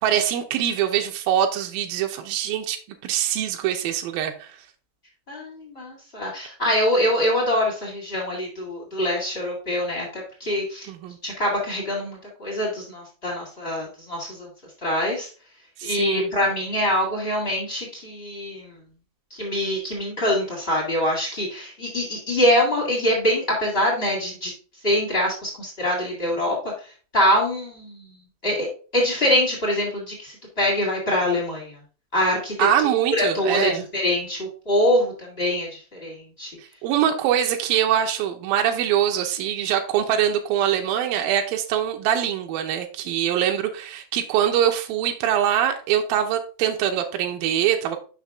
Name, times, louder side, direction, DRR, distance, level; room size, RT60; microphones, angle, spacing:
voice 1, 0.0-2.8 3.0-4.5 10.9-11.2 15.8-16.3 32.6-33.8 36.8-48.0, right 10 dB, 80° right, 3 dB, 2.1 m, -23 dB
voice 2, 5.3-10.9 11.2-14.5 14.8-15.3 15.8-18.8 19.3-24.5 24.8-28.2 28.4-28.7 28.9-31.8 32.1-36.5, left 1 dB, 65° left, -3 dB, 0.6 m, -24 dB
6.0 x 5.8 x 3.6 m, 0.37 s
omnidirectional pair, 5.0 m